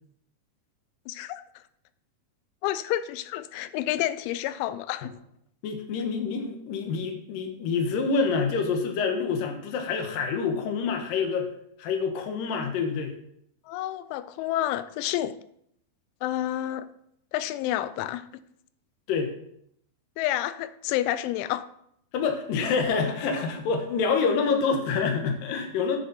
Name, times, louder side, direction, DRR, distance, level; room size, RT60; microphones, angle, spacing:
voice 1, 1.1-1.4 2.6-5.1 13.7-15.4 16.2-16.9 17.3-18.3 20.2-21.7, left 13 dB, 85° left, 14 dB, 2.9 m, -29 dB
voice 2, 5.6-11.5 11.8-13.1 19.1-19.3 22.1-26.0, left 5 dB, 65° left, 5 dB, 2.3 m, -27 dB
9.7 x 7.8 x 4.1 m, 0.72 s
omnidirectional pair, 5.4 m